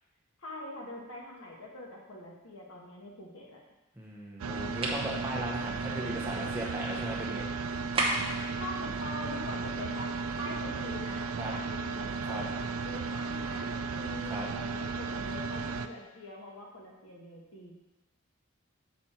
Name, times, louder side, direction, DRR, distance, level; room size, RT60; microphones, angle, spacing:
voice 1, 0.4-3.6 8.6-17.7, left 1 dB, 80° left, -2 dB, 1.5 m, -44 dB
voice 2, 4.0-7.5 11.4-11.5 12.3-12.4 14.3-14.5, right 1 dB, 10° right, -4 dB, 1.1 m, -37 dB
sound 1, 4.4-15.9, right 4 dB, 85° right, 0.4 m, -35 dB
sound 2, 4.8-5.1 7.9-8.4, right 2 dB, 25° right, 0.8 m, -29 dB
7.0 x 4.2 x 4.4 m, 1.0 s
head